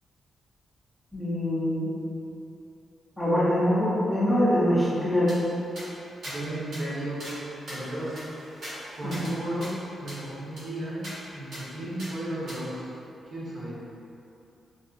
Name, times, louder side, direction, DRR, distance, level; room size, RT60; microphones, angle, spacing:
voice 1, 1.1-1.9 3.2-5.3 9.0-9.3, equal, ahead, -10 dB, 0.6 m, -24 dB
sound 1, 5.3-5.4 5.8-5.9 6.2-6.4 6.7-6.8 7.2-7.4 7.7-9.3 9.6-9.7 10.1-10.2 10.6-10.7 11.0-11.2 11.5-11.6 12.0-12.1 12.5-12.6, equal, 65° right, 1.5 m, -40 dB
voice 2, 6.2-7.3 7.7-8.3 8.9-9.6 10.0-11.1 11.3-12.9 13.3-13.8, right 1 dB, 50° right, -8 dB, 1.0 m, -34 dB
5.1 x 2.1 x 2.5 m, 2.7 s
wide cardioid pair, 160°, 0 cm